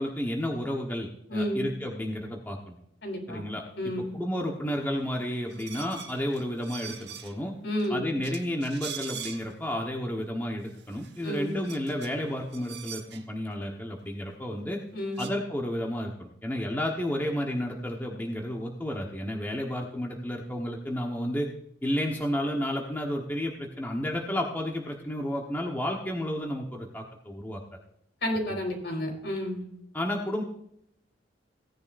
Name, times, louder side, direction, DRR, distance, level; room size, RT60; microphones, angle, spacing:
voice 1, 0.0-2.8 3.3-3.6 4.1-7.5 7.9-14.8 15.2-21.5 21.8-27.6 28.5-28.6 29.9-30.4, equal, 10° left, 0 dB, 1.2 m, -31 dB
voice 2, 1.3-1.7 3.0-3.4 3.8-4.1 7.6-8.1 11.2-11.6 14.9-15.3 28.2-29.6, equal, 70° left, 1 dB, 4.6 m, -31 dB
sound 1, 5.5-7.5 7.8-7.9 8.2-9.7 10.2-10.3 10.6-13.2 14.7-14.8 15.0-15.3, right 9 dB, 65° right, 1.3 m, -43 dB
16.5 x 10.5 x 2.6 m, 0.75 s
head